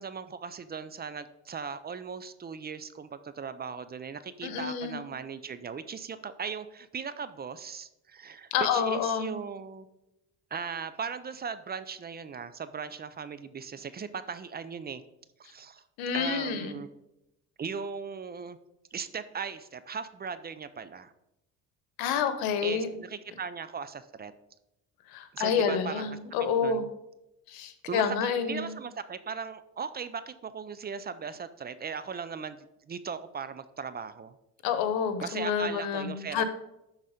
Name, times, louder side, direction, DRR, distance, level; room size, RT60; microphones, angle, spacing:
voice 1, 0.0-9.9 10.5-15.0 15.4-15.8 16.1-16.9 17.6-18.6 18.9-21.1 22.6-24.3 25.3-26.2 26.6-26.9 27.9-32.6 32.8-34.4 35.2-36.4, right 6 dB, 25° right, 13 dB, 0.5 m, -38 dB
voice 2, 4.4-5.0 8.5-9.4 16.0-16.8 22.0-22.9 25.1-26.9 27.5-28.8 34.6-36.4, left 7 dB, 85° left, 9 dB, 1.2 m, -28 dB
12.0 x 4.1 x 5.0 m, 0.89 s
cardioid pair, 110°, 35 cm